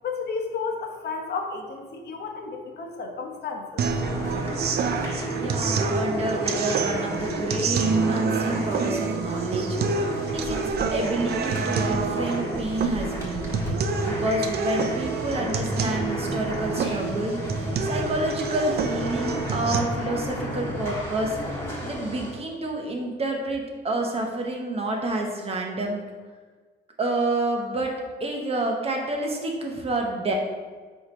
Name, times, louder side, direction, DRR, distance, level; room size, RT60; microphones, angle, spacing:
voice 1, 0.0-3.8, left 4 dB, 60° left, 2 dB, 1.0 m, -32 dB
sound 1, 3.8-22.3, equal, 15° left, 1.5 m, -33 dB
sound 2, 3.8-19.8, right 5 dB, 60° right, 0.5 m, -28 dB
voice 2, 5.3-9.8 10.3-13.6 14.0-17.4 17.8-26.0 27.0-27.9 28.2-30.3, right 2 dB, 30° right, 0 dB, 1.0 m, -29 dB
6.3 x 3.0 x 5.2 m, 1.4 s
cardioid pair, 130°, 19 cm